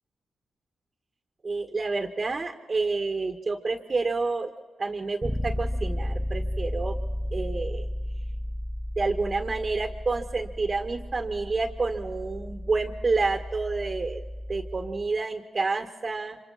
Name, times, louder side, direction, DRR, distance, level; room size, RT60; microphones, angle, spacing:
voice 1, 1.4-4.5 4.8-7.0 7.3-7.9 9.0-14.2 14.5-16.4, right 3 dB, 40° right, 5 dB, 1.7 m, -29 dB
Bass guitar, 5.2-15.1, left 1 dB, 5° right, 1.7 m, -33 dB
26.0 x 25.5 x 4.3 m, 1.3 s
supercardioid pair, 50°, 0 cm